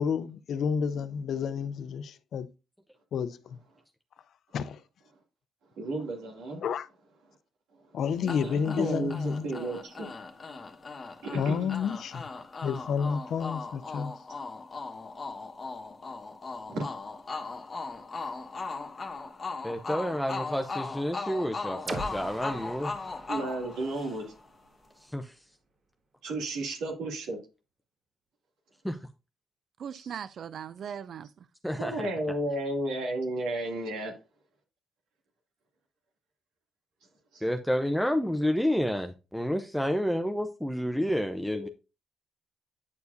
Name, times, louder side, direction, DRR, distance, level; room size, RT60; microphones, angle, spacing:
voice 1, 0.0-2.5 3.1-3.6 4.5-4.8 6.6-6.9 7.9-9.4 11.3-12.2 12.6-14.1, left 6 dB, 65° left, 0.5 m, -30 dB
voice 2, 5.8-6.6 8.2-10.1 11.2-11.8 16.7-16.9 23.3-24.3 26.2-27.4 31.8-34.1 37.3-37.4 41.5-41.7, right 2 dB, 85° right, 2.4 m, -33 dB
sound 1, 8.3-24.5, left 4 dB, 35° left, 1.3 m, -38 dB
voice 3, 19.6-22.9 25.1-25.3 28.8-29.0 31.6-31.9 37.4-41.7, equal, ahead, 0.6 m, -29 dB
sound 2, 21.9-25.7, right 2 dB, 45° right, 1.6 m, -43 dB
voice 4, 29.8-31.5, right 8 dB, 60° right, 0.4 m, -39 dB
9.5 x 4.7 x 2.6 m
cardioid pair, 90°, 0 cm